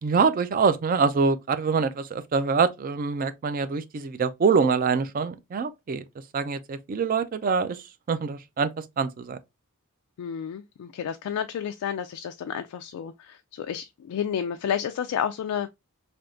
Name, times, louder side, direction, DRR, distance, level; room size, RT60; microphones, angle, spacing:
voice 1, 0.0-6.0 6.3-9.4, right 5 dB, 40° right, 0.3 m, -25 dB
voice 2, 10.2-15.7, left 8 dB, 85° left, 0.3 m, -31 dB
3.4 x 2.8 x 2.5 m
head